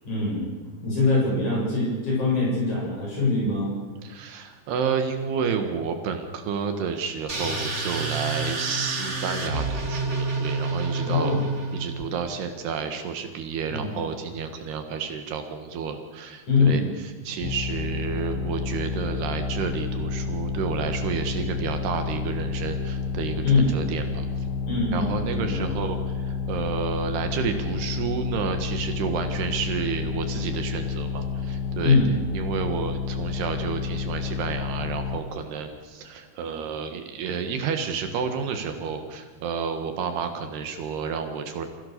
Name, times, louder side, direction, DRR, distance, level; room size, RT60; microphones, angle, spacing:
voice 1, 0.0-0.5 0.8-3.7 11.0-11.4 13.7-14.0 16.5-16.9 23.4-23.7 24.7-25.7 31.8-32.1, left 3 dB, 45° left, -4 dB, 9.2 m, -23 dB
voice 2, 4.0-11.4 11.7-24.3 24.9-32.0 32.3-41.7, right 6 dB, 75° right, 6 dB, 3.6 m, -30 dB
sound 1, 7.3-12.0, right 3 dB, 25° right, 1.5 m, -28 dB
sound 2, 17.4-35.2, left 5 dB, 70° left, 2.8 m, -30 dB
28.5 x 16.5 x 6.8 m, 1.4 s
omnidirectional pair, 4.8 m